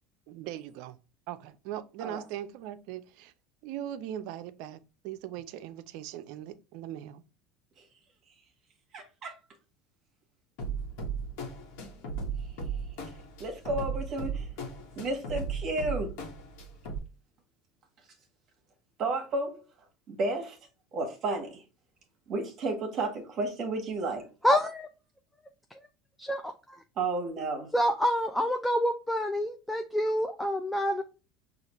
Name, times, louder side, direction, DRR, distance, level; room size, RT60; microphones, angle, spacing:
voice 1, 0.3-1.0 1.3-3.3 3.6-4.8 5.0-7.2, right 11 dB, 70° right, 0.4 m, -40 dB
voice 2, 8.9-9.3 13.4-14.5 15.0-16.1 19.0-19.6 20.1-20.6 20.9-21.6 22.3-24.3 27.0-27.7, right 2 dB, 50° right, 1.0 m, -32 dB
sound 1, 10.6-17.0, right 4 dB, 70° left, 1.2 m, -36 dB
voice 3, 24.4-24.9 26.2-26.8 27.7-31.0, equal, 5° left, 0.4 m, -27 dB
4.9 x 2.4 x 3.0 m
supercardioid pair, 95°, 0 cm